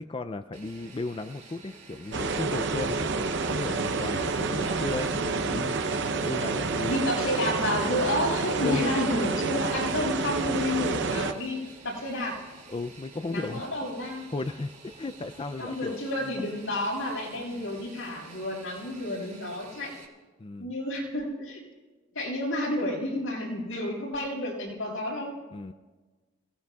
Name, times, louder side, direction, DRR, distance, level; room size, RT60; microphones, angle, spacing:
voice 1, 0.0-5.8 6.2-6.9 8.6-8.9 12.7-13.9 14.3-15.9 20.4-20.7 25.5-25.7, left 3 dB, 25° left, 9 dB, 0.4 m, -35 dB
Fixed-wing aircraft airplane, 0.5-20.0, right 3 dB, 40° right, 2.5 m, -50 dB
sound 1, 2.1-11.3, right 4 dB, 60° right, 0.7 m, -29 dB
voice 2, 6.8-12.4 13.3-14.3 15.6-19.9 20.6-21.6 22.1-25.3, left 1 dB, 80° left, -4 dB, 6.2 m, -30 dB
28.0 x 18.0 x 2.4 m, 1.3 s
head